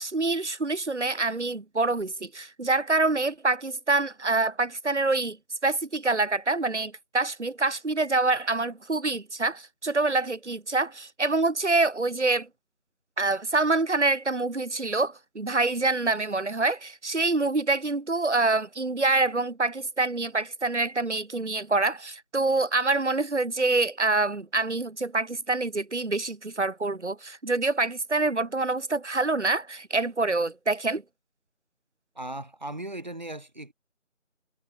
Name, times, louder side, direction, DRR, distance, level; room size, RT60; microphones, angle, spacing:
voice 1, 0.0-5.4 5.6-12.5 13.2-31.0, right 3 dB, 60° right, 1.0 m, -26 dB
voice 2, 32.1-33.7, right 1 dB, 35° right, 3.4 m, -37 dB
figure-of-eight pair, 170°, 40 cm